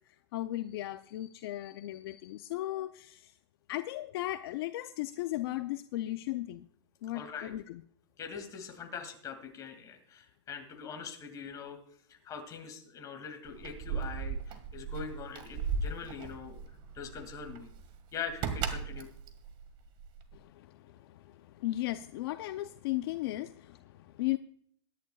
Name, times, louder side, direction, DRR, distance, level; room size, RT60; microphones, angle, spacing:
voice 1, 0.1-3.3 3.7-6.7 7.0-7.8 20.3-24.4, left 16 dB, 55° left, 10 dB, 0.6 m, -36 dB
voice 2, 7.1-7.5 8.2-11.8 12.2-16.6 16.9-17.7 18.1-19.1, left 6 dB, 25° left, 5 dB, 2.4 m, -43 dB
Keys jangling, 13.4-20.4, right 6 dB, 35° right, 1.8 m, -37 dB
22.5 x 11.0 x 2.4 m, 0.62 s
hypercardioid pair, 145°, 15 cm